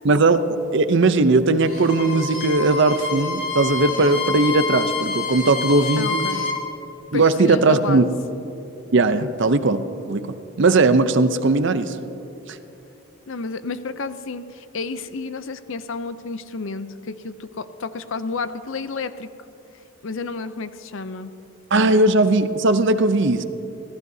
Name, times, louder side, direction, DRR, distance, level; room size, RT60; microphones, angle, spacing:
voice 1, 0.0-0.4 0.7-6.3 7.1-8.0 8.9-12.0 12.5-12.6 21.7-23.4, right 3 dB, 55° right, 11 dB, 0.6 m, -18 dB
Bowed string instrument, 1.6-6.6, left 4 dB, 35° left, 2.5 m, -27 dB
voice 2, 6.0-6.5 7.1-8.1 13.3-19.3 20.0-21.3, left 4 dB, 60° left, 12 dB, 0.6 m, -31 dB
24.5 x 15.0 x 2.8 m, 3.0 s
head